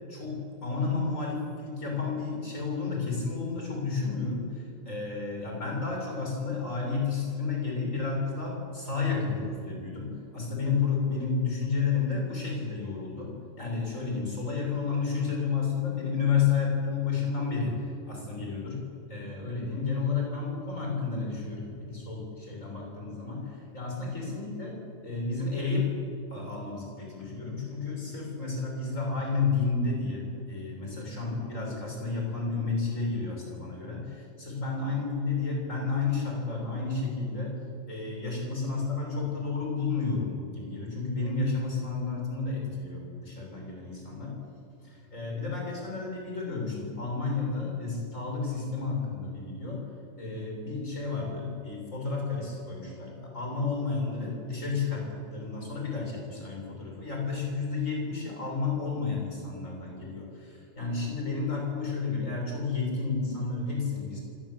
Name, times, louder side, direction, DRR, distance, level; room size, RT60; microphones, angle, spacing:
voice 1, 0.1-13.3 13.6-18.8 19.1-25.9 26.3-37.5 37.9-44.4 44.8-49.8 50.2-64.2, left 4 dB, 85° left, -1 dB, 7.4 m, -31 dB
25.0 x 20.0 x 8.1 m, 2.6 s
omnidirectional pair, 1.3 m